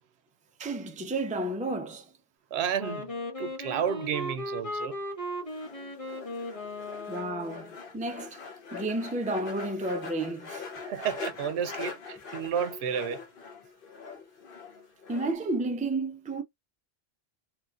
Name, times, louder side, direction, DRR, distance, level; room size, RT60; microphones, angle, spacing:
voice 1, 0.6-2.1 7.1-8.4 8.7-10.7 15.1-16.4, right 2 dB, 10° right, 0.4 m, -32 dB
voice 2, 2.5-3.1 3.4-5.0 10.8-13.2, right 8 dB, 85° right, 0.8 m, -31 dB
Wind instrument woodwind instrument, 2.8-7.8, left 1 dB, 35° left, 1.5 m, -37 dB
sound 1, 5.5-15.3, left 5 dB, 60° left, 1.0 m, -42 dB
3.0 x 2.5 x 2.4 m
omnidirectional pair, 1.1 m